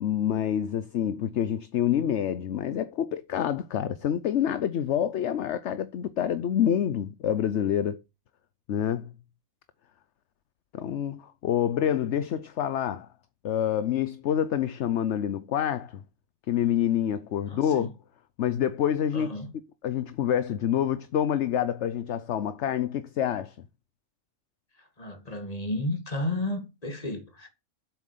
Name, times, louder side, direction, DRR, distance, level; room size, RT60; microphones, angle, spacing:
voice 1, 0.0-8.0 8.7-9.1 10.7-13.1 13.4-16.0 16.5-17.9 18.4-19.3 19.8-23.6, left 10 dB, 65° left, 1.0 m, -27 dB
voice 2, 17.5-17.9 19.1-19.5 24.8-27.5, left 1 dB, 30° left, 2.3 m, -33 dB
8.1 x 7.2 x 6.7 m
omnidirectional pair, 1.4 m